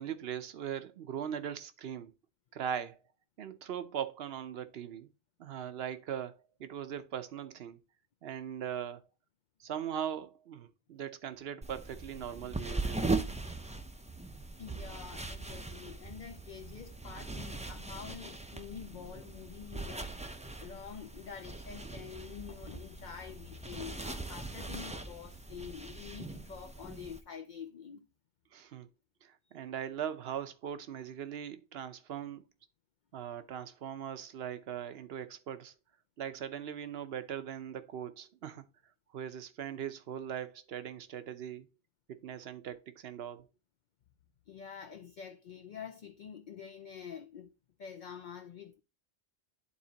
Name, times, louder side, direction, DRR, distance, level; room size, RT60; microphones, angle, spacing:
voice 1, 0.0-2.1 2.5-3.0 3.4-5.1 5.4-7.8 8.2-9.0 9.6-13.0 28.5-28.9 29.2-32.4 33.1-35.7 36.2-38.6 39.1-41.7 42.2-43.5, right 9 dB, 75° right, 1.0 m, -40 dB
sound 1, 11.6-27.2, right 3 dB, 10° right, 0.4 m, -40 dB
voice 2, 14.6-20.1 20.6-28.1 44.5-47.5 47.8-48.8, left 7 dB, 55° left, 0.6 m, -47 dB
11.0 x 4.2 x 2.8 m
omnidirectional pair, 1.0 m